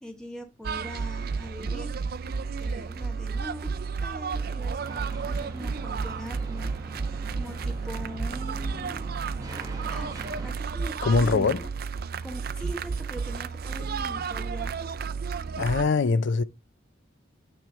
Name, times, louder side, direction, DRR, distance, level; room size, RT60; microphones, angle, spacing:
voice 1, 0.0-2.0 2.6-3.7 4.0-7.0 7.3-9.1 9.8-11.7 12.2-14.7 15.6-15.7, equal, 5° left, 1.0 m, -41 dB
sound 1, 0.6-15.9, right 5 dB, 50° right, 0.5 m, -32 dB
sound 2, 4.8-10.5, right 1 dB, 20° right, 1.1 m, -42 dB
voice 2, 11.0-11.6 15.6-16.4, left 4 dB, 70° left, 0.5 m, -22 dB
9.1 x 3.2 x 5.2 m
head